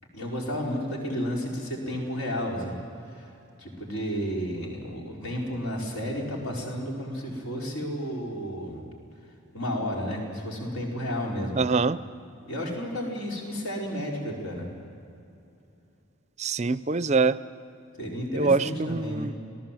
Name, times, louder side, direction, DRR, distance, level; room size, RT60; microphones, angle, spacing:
voice 1, 0.1-2.8 3.1-3.3 3.6-8.8 9.5-11.6 12.5-14.7 18.0-19.3, equal, 75° left, -2 dB, 4.8 m, -32 dB
voice 2, 11.6-12.0 16.4-17.4 18.3-19.3, right 4 dB, 30° right, 15 dB, 0.5 m, -24 dB
27.0 x 18.0 x 7.6 m, 2.7 s
head